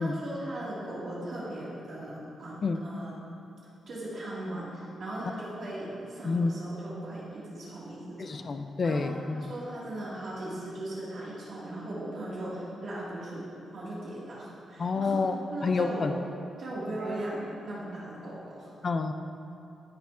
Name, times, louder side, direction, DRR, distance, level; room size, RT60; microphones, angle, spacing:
voice 1, 0.0-3.2 3.9-8.5 8.8-13.5 13.7-15.2 15.5-16.1 16.6-18.7, right 1 dB, 50° right, -8 dB, 1.9 m, -38 dB
voice 2, 6.2-6.5 8.2-9.5 14.8-15.4 15.6-16.1 18.8-19.1, left 4 dB, 35° left, 7 dB, 0.3 m, -28 dB
13.5 x 5.8 x 2.5 m, 2.7 s
wide cardioid pair, 170°, 0 cm